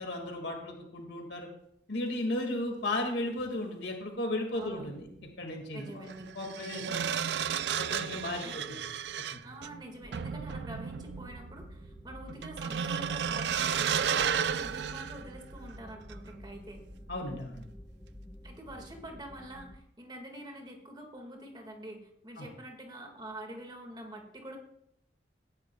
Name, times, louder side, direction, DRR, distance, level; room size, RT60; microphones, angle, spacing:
voice 1, 0.0-1.5 1.9-5.1 5.4-6.1 6.4-7.1 7.8-8.6 9.3-9.4 17.1-17.7 22.4-22.5, left 1 dB, 80° left, 2 dB, 2.0 m, -35 dB
voice 2, 4.5-5.1 5.7-6.9 8.4-8.8 9.4-16.8 18.4-24.6, right 1 dB, 25° right, 3 dB, 1.8 m, -46 dB
sound 1, 4.7-4.9 6.1-15.8 16.1-16.4, right 8 dB, 75° right, 0.4 m, -33 dB
sound 2, 10.0-19.7, equal, 10° left, 1.1 m, -50 dB
17.0 x 10.5 x 2.3 m, 0.75 s
head